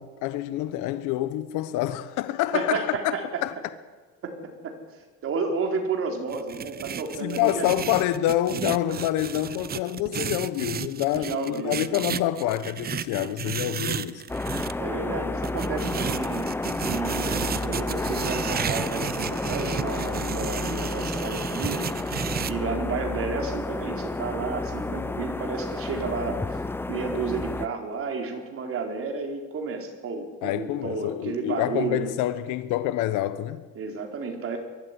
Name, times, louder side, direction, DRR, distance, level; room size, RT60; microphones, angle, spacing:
voice 1, 0.0-3.1 3.4-3.5 7.2-14.2 30.4-33.6, left 13 dB, 75° left, 1.1 m, -27 dB
voice 2, 2.5-3.2 4.2-4.8 5.2-7.6 11.1-12.0 13.9-14.0 14.8-16.5 16.8-26.4 26.9-32.1 33.7-34.6, right 4 dB, 45° right, 4.6 m, -32 dB
sound 1, 6.3-14.7 15.4-22.5, right 8 dB, 30° right, 0.8 m, -33 dB
sound 2, 14.3-27.7, left 2 dB, 5° left, 0.7 m, -31 dB
22.0 x 14.0 x 9.9 m
cardioid pair, 110°, 30 cm